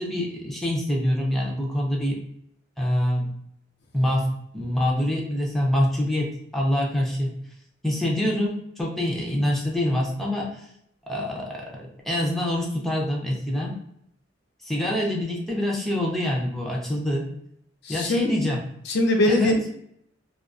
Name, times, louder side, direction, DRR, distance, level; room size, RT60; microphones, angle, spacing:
voice 1, 0.0-2.2 2.8-3.3 3.9-7.3 7.8-10.6 11.1-11.8 12.1-13.8 14.6-17.3 17.9-18.6 19.3-19.5, left 1 dB, ahead, -3 dB, 0.5 m, -25 dB
voice 2, 17.8-18.4 18.9-19.7, left 1 dB, 55° left, 2 dB, 0.4 m, -22 dB
2.3 x 2.2 x 2.4 m, 0.73 s
head